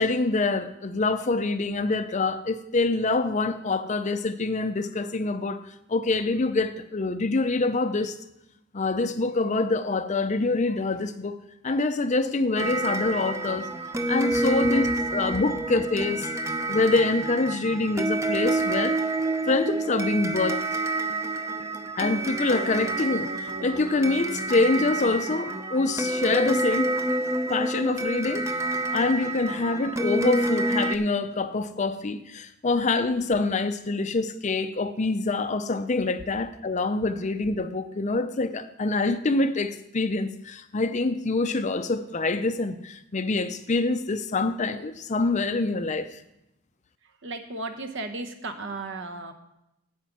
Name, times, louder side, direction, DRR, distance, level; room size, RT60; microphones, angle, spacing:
voice 1, 0.0-8.2 8.7-11.4 11.6-13.7 14.1-16.3 16.7-19.0 19.5-20.6 22.0-26.9 27.2-28.5 28.9-46.2, left 3 dB, 35° left, 0.5 m, -25 dB
sound 1, 12.6-31.0, right 2 dB, 15° right, 0.6 m, -28 dB
voice 2, 47.2-49.3, right 2 dB, 55° right, 1.0 m, -35 dB
9.0 x 8.1 x 6.0 m
head